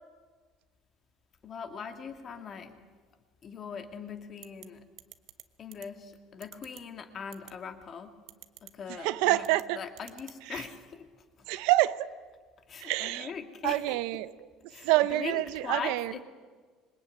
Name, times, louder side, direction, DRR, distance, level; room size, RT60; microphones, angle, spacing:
voice 1, 1.4-2.8 3.4-4.8 5.6-8.2 8.6-9.4 9.8-11.1 11.4-11.5 12.7-14.0 14.7-16.2, left 6 dB, 25° left, 7 dB, 2.1 m, -41 dB
sound 1, 4.4-4.7 5.0-5.4 5.7-5.9 6.4-6.8 7.3-7.5 8.3-8.7 9.4-9.6 10.0-10.4, right 15 dB, 50° right, 1.3 m, -48 dB
voice 2, 9.0-9.8 10.5-10.6 11.5-12.1 12.8-13.3 13.6-14.5 14.8-16.1, right 17 dB, 70° right, 15 dB, 0.9 m, -27 dB
26.5 x 24.0 x 9.3 m, 1.5 s
cardioid pair, 175°, 0 cm